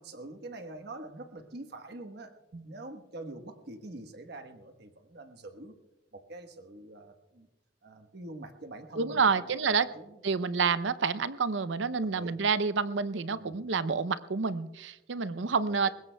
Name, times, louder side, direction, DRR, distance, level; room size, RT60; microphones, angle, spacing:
voice 1, 0.0-2.3 2.6-5.8 6.1-7.5 7.8-10.4 12.1-12.4 13.4-13.6, right 2 dB, 60° right, 6 dB, 1.3 m, -45 dB
voice 2, 9.0-9.9 10.2-15.9, right 5 dB, 75° right, 14 dB, 0.6 m, -28 dB
22.5 x 20.0 x 2.3 m, 1.1 s
head